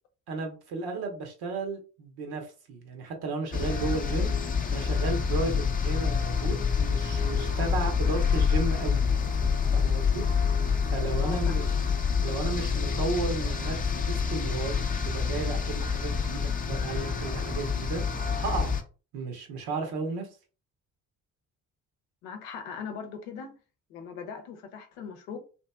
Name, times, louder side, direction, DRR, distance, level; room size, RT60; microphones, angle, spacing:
voice 1, 0.3-9.0 9.7-10.3 10.9-11.6 12.2-18.8 19.1-20.3, right 3 dB, 65° right, 1.0 m, -34 dB
Binaural Backyard, 3.5-18.8, left 6 dB, 20° left, 0.6 m, -27 dB
voice 2, 11.2-11.7 22.2-23.5 23.9-25.4, left 6 dB, 85° left, 0.7 m, -40 dB
2.8 x 2.6 x 2.3 m
hypercardioid pair, 50°, 42 cm